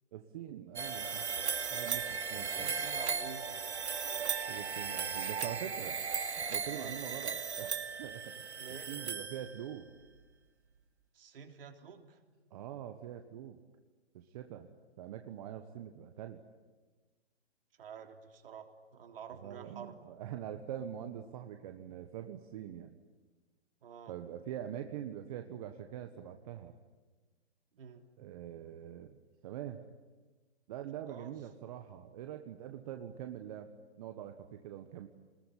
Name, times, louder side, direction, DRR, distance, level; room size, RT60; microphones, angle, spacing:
voice 1, 0.1-1.3 1.7-2.8 4.5-6.0 6.4-7.7 8.0-8.6 8.9-9.9 12.5-13.6 14.1-16.4 19.4-23.0 24.1-26.8 28.2-29.2 29.4-29.8 30.7-33.7 34.0-35.1, right 10 dB, 35° right, 6 dB, 1.4 m, -44 dB
sound 1, 0.8-9.8, right 6 dB, 80° right, 2.8 m, -37 dB
voice 2, 2.4-3.5 6.7-6.9 8.6-8.9 11.1-12.2 17.8-19.9 23.8-24.1 27.7-28.1 31.1-31.3, right 7 dB, 55° right, 5 dB, 3.6 m, -49 dB
28.0 x 21.0 x 10.0 m, 1.3 s
hypercardioid pair, 155°, 33 cm